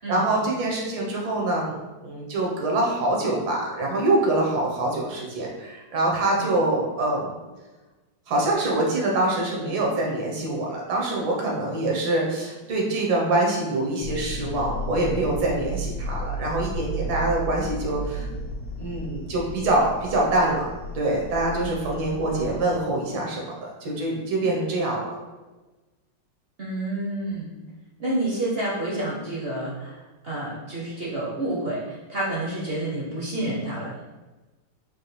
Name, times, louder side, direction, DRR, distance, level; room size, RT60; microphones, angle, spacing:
voice 1, 0.1-1.8 2.0-7.3 8.3-18.3 18.8-20.7 20.9-25.2, right 2 dB, 85° right, -2 dB, 1.7 m, -25 dB
sound 1, 14.0-22.6, right 1 dB, 75° left, 0.9 m, -33 dB
voice 2, 22.3-22.9 26.6-27.5 28.0-34.0, right 1 dB, 60° right, -6 dB, 0.6 m, -29 dB
4.5 x 2.6 x 3.2 m, 1.2 s
omnidirectional pair, 2.0 m